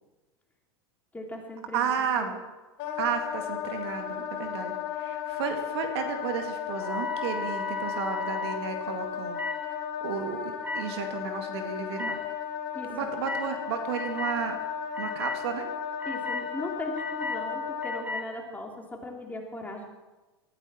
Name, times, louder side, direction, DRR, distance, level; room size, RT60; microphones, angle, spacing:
voice 1, 1.1-1.9 2.2-2.3 12.7-12.9 16.0-19.9, left 2 dB, 10° left, 0 dB, 3.0 m, -38 dB
voice 2, 1.7-2.4 3.0-9.7 10.0-12.2 12.9-14.6 15.0-15.7, right 7 dB, 70° right, 6 dB, 1.9 m, -33 dB
Wind instrument woodwind instrument, 2.8-18.1, left 8 dB, 55° left, 3.6 m, -35 dB
sound 1, 6.8-8.6 9.3-9.6 10.6-10.8 12.0-12.1 13.2-13.5 13.9-14.4 14.9-15.4 16.0-16.4 17.0-17.4 17.8-18.2, left 3 dB, 10° right, 2.2 m, -34 dB
19.5 x 13.5 x 4.3 m, 1.2 s
hypercardioid pair, 95°, 14 cm